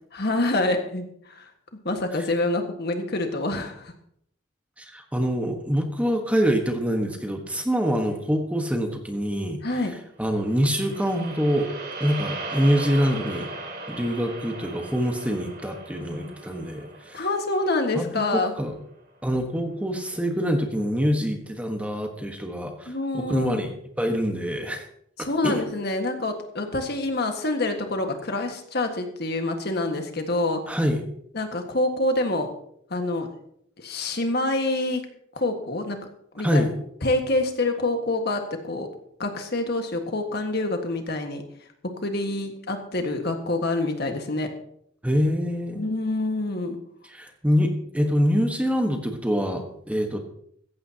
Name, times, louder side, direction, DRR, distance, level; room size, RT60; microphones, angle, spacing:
voice 1, 0.1-1.0 1.3-1.4 1.8-3.9 9.6-9.9 17.1-18.5 22.9-23.6 25.2-30.6 31.3-32.5 32.9-33.3 33.8-35.0 35.3-36.0 36.3-36.7 37.0-38.9 39.2-41.4 42.0-44.5 45.7-46.8, left 2 dB, 55° left, 5 dB, 1.7 m, -26 dB
voice 2, 4.8-11.7 12.0-13.5 13.9-17.3 17.9-18.7 19.2-23.7 24.0-24.9 25.2-25.6 30.7-31.0 36.4-36.7 45.0-45.9 47.1-50.2, equal, 5° right, 4 dB, 1.3 m, -25 dB
sound 1, 10.3-18.7, right 3 dB, 50° right, 2.4 m, -38 dB
16.0 x 14.5 x 2.9 m, 0.69 s
head